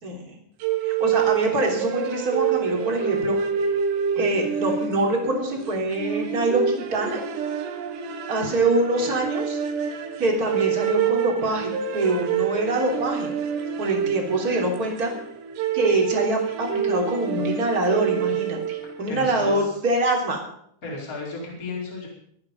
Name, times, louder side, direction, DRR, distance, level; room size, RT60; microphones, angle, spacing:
voice 1, 0.0-0.4 0.8-3.4 4.1-7.2 8.3-9.6 10.2-13.3 13.8-15.1 15.7-20.4, right 2 dB, 20° right, 0 dB, 3.2 m, -24 dB
sound 1, 0.6-19.1, right 8 dB, 75° right, 3.4 m, -27 dB
voice 2, 19.1-19.8 20.8-22.1, left 3 dB, 20° left, -3 dB, 4.9 m, -33 dB
24.5 x 9.6 x 5.3 m, 0.69 s
omnidirectional pair, 5.1 m